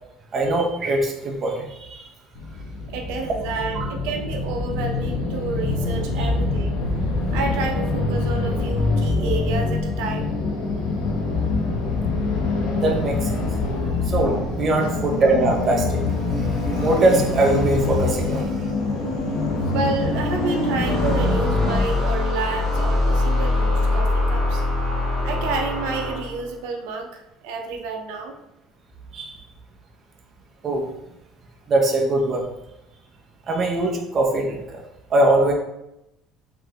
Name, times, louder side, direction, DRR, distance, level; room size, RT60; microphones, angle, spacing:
voice 1, 0.3-2.1 3.7-3.9 6.2-6.3 12.8-13.4 14.1-16.0 16.3-18.7 29.1-29.4 30.6-30.9 31.7-32.4 33.5-34.8 35.1-35.5, right 2 dB, 25° right, 0 dB, 0.6 m, -22 dB
sound 1, 2.3-21.8, left 3 dB, 80° left, 0.8 m, -24 dB
voice 2, 2.9-6.8 7.3-10.4 13.8-14.0 14.8-15.0 19.7-24.6 25.2-28.3, right 4 dB, 90° right, 3 dB, 0.6 m, -30 dB
sound 2, 20.8-26.5, left 2 dB, 5° left, 1.2 m, -22 dB
4.1 x 3.2 x 2.8 m, 0.87 s
cardioid pair, 175°, 0 cm